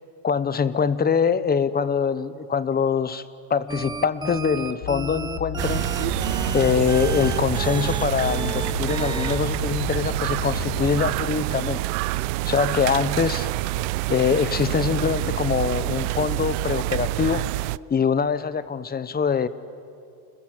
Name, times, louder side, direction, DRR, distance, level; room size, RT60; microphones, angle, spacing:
voice 1, 0.2-3.2 3.5-5.9 6.5-11.8 12.5-13.5 14.1-17.5 17.9-19.5, left 6 dB, 20° left, 15 dB, 1.0 m, -23 dB
sound 1, 3.7-9.4, right 3 dB, 10° right, 1.2 m, -33 dB
sound 2, 4.8-11.2, left 19 dB, 75° left, 1.0 m, -35 dB
sound 3, 5.6-17.8, right 19 dB, 85° right, 0.6 m, -27 dB
30.0 x 21.0 x 9.1 m, 2.5 s
cardioid pair, 130°, 48 cm